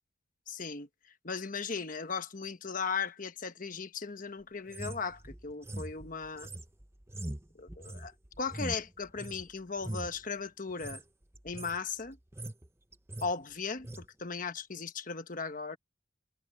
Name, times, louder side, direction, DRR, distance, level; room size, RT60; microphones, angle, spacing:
voice 1, 0.5-0.9 1.2-6.5 7.6-11.0 11.4-12.2 13.2-15.8, left 5 dB, 45° left, 1.2 m, -37 dB
sound 1, 4.7-9.4 9.8-10.2 10.7-11.0 11.3-11.8 12.1-12.7 12.9-13.3 13.8-14.0, right 1 dB, 15° right, 0.9 m, -42 dB
head